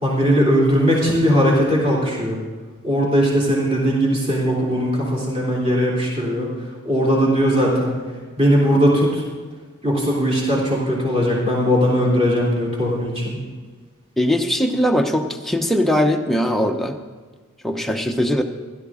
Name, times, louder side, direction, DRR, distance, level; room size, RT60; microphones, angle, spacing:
voice 1, 0.0-2.4 2.8-6.5 6.8-8.0 8.4-9.2 9.8-13.4, equal, 30° right, -6 dB, 3.4 m, -19 dB
voice 2, 14.2-17.0 17.6-18.4, equal, ahead, 3 dB, 0.7 m, -20 dB
16.0 x 12.0 x 3.7 m, 1.4 s
head